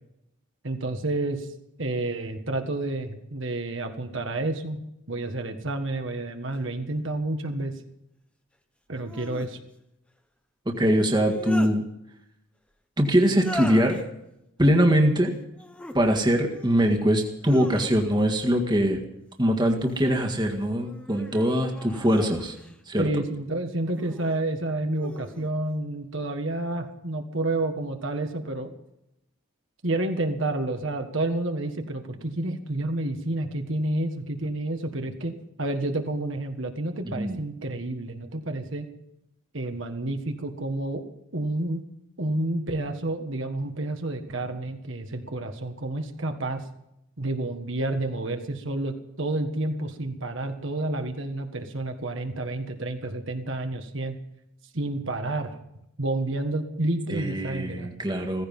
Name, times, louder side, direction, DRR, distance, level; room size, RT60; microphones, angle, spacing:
voice 1, 0.6-1.5 1.8-4.8 5.1-7.7 8.9-9.6 23.0-28.7 29.8-35.3 35.6-38.9 39.5-41.0 41.3-41.8 42.2-46.6 47.2-54.2 54.7-55.6 56.0-57.9, right 2 dB, 60° right, 5 dB, 1.6 m, -29 dB
sound 1, 6.5-6.6 8.9-9.5 11.0-11.8 13.3-14.0 15.5-16.0 16.5-17.0 17.4-18.3 19.5-20.2 20.8-22.8 23.9-24.4 25.0-25.5, left 1 dB, 5° left, 1.1 m, -40 dB
voice 2, 10.7-11.8 13.0-14.0 14.6-15.3 15.9-19.0 19.4-22.6 22.9-23.1 37.1-37.4 57.1-58.4, equal, 20° right, 2 dB, 1.8 m, -22 dB
16.5 x 15.5 x 5.5 m, 0.83 s
head